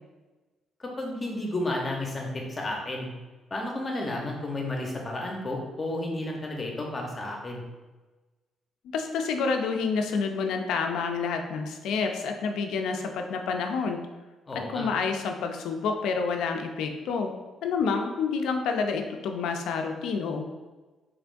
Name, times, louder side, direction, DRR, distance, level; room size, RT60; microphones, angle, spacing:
voice 1, 0.8-3.1 3.5-7.6 14.5-14.9, left 1 dB, 30° left, 0 dB, 0.8 m, -32 dB
voice 2, 8.9-14.0 14.5-17.3 17.6-20.5, left 5 dB, 85° left, 4 dB, 0.4 m, -28 dB
3.6 x 3.4 x 2.6 m, 1.2 s
cardioid pair, 90°, 0 cm